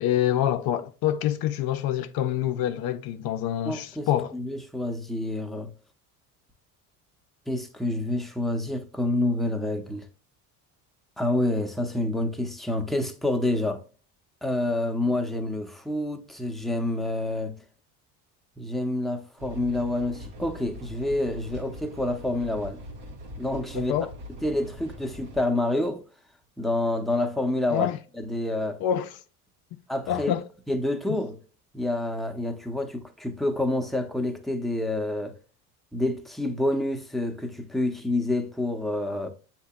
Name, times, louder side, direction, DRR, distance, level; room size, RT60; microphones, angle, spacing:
voice 1, 0.0-4.3 23.7-24.1 27.7-28.0 28.8-29.1 30.1-30.4, left 11 dB, 55° left, 0.5 m, -26 dB
voice 2, 3.6-5.7 7.5-10.1 11.2-13.8 14.4-17.6 18.6-22.8 23.4-23.9 24.4-26.0 26.6-27.9 28.1-28.8 29.9-30.4 30.7-31.4 31.7-35.3 35.9-39.3, left 1 dB, ahead, 0.6 m, -28 dB
sound 1, 19.4-25.4, left 1 dB, 80° right, 1.2 m, -42 dB
7.8 x 2.9 x 2.2 m
hypercardioid pair, 70°, 45 cm